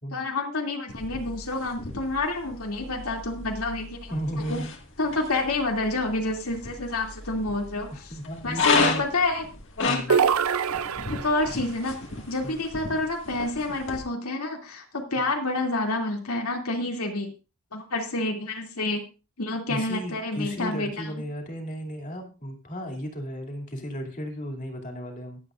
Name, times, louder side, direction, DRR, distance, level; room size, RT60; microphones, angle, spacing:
voice 1, 0.1-4.1 4.5-4.6 5.0-8.0 8.4-9.5 10.1-10.3 11.1-12.0 12.3-17.3 17.7-19.0 19.4-21.1, left 2 dB, 90° left, 1 dB, 2.7 m, -28 dB
sound 1, 0.9-14.0, left 4 dB, 60° left, 1.9 m, -33 dB
voice 2, 4.1-4.7 8.1-9.0 9.9-10.2 12.4-12.6 19.7-25.4, equal, 35° left, 3 dB, 2.6 m, -34 dB
sound 2, 10.1-11.6, right 7 dB, 80° right, 0.6 m, -24 dB
23.0 x 8.0 x 2.5 m, 0.32 s
head